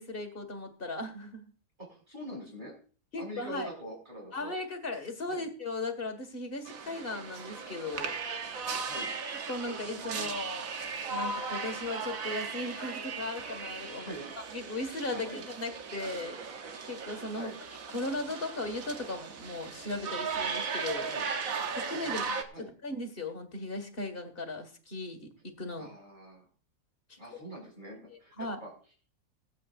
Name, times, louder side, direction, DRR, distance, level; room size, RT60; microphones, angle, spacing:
voice 1, 0.0-1.5 3.1-3.7 4.3-8.2 9.5-14.1 14.5-17.5 17.9-21.1 21.7-22.4 22.8-25.9 27.3-27.4 28.4-28.6, left 2 dB, 35° left, 5 dB, 2.1 m, -37 dB
voice 2, 1.8-2.7 3.2-4.5 5.3-5.4 8.8-9.1 9.9-10.4 14.0-14.3 15.1-15.4 17.3-17.6 21.0-21.2 22.1-22.2 22.5-22.7 25.8-26.5 27.2-28.7, equal, 30° right, -3 dB, 7.3 m, -44 dB
sound 1, 6.7-22.4, right 5 dB, 60° right, 1.4 m, -37 dB
24.5 x 8.6 x 2.6 m, 0.40 s
omnidirectional pair, 1.7 m